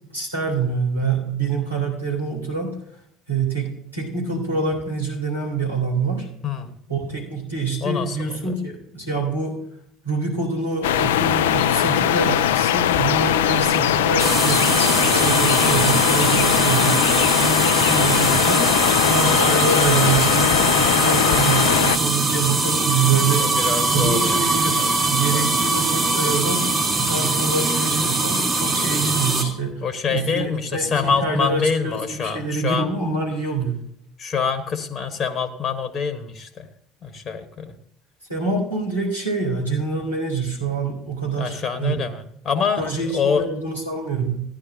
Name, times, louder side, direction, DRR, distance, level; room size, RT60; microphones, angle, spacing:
voice 1, 0.1-2.7 3.3-6.3 6.9-9.6 10.0-17.0 17.4-23.5 23.9-26.7 27.0-29.8 30.1-33.8 38.3-41.9 42.8-44.4, right 4 dB, 85° right, -4 dB, 3.3 m, -25 dB
voice 2, 6.4-6.7 7.8-8.6 23.4-24.4 24.8-25.6 29.8-33.1 34.2-36.7 37.0-37.7 41.4-42.9 43.1-43.5, left 6 dB, 35° left, 10 dB, 1.1 m, -26 dB
sound 1, 10.8-22.0, left 11 dB, 70° left, 0.4 m, -20 dB
Scary Waterpipe Sound at Apartment Complex, 14.2-29.4, right 3 dB, 35° right, 2.5 m, -22 dB
15.0 x 10.5 x 2.7 m, 0.70 s
figure-of-eight pair, 60°, 0 cm